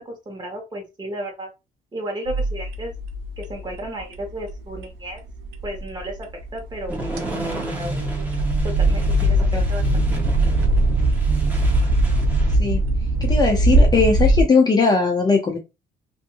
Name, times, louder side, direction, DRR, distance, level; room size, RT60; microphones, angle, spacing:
voice 1, 0.0-1.5 1.9-2.9 3.4-5.2 5.6-6.3 6.5-8.0 8.6-9.4 9.7-9.8 10.2-10.3, right 1 dB, 25° right, 1.3 m, -33 dB
sound 1, 2.3-14.4, right 1 dB, 85° right, 0.5 m, -21 dB
sound 2, 6.9-12.6, right 3 dB, 10° right, 1.0 m, -31 dB
voice 2, 13.2-15.6, left 4 dB, 25° left, 0.7 m, -19 dB
2.6 x 2.6 x 2.5 m
cardioid pair, 110°, 17 cm